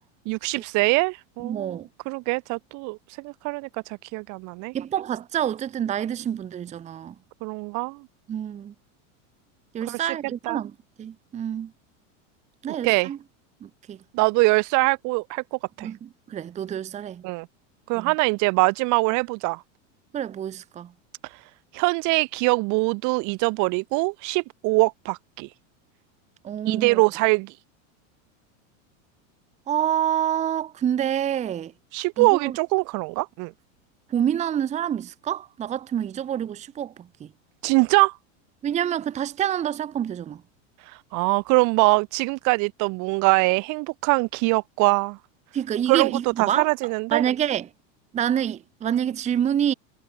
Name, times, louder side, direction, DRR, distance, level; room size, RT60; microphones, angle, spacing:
voice 1, 0.3-1.7 2.1-4.7 7.4-8.0 9.9-10.1 10.5-10.6 12.7-13.1 14.1-15.9 17.2-17.5 17.9-19.6 21.2-21.4 21.7-25.5 26.7-27.6 31.9-33.5 37.6-38.1 40.8-45.2 45.9-47.2, right 27 dB, 50° right, 1.8 m, -23 dB
voice 2, 1.4-1.9 4.7-7.1 8.3-8.7 9.7-10.7 11.0-11.7 12.6-13.2 13.6-14.0 15.8-17.2 17.9-18.1 20.1-20.9 26.4-27.0 29.7-31.7 32.2-32.6 34.1-37.3 38.6-40.4 45.5-46.7 47.1-47.7 48.1-49.7, right 10 dB, 20° right, 0.7 m, -27 dB
supercardioid pair, 135°, 38 cm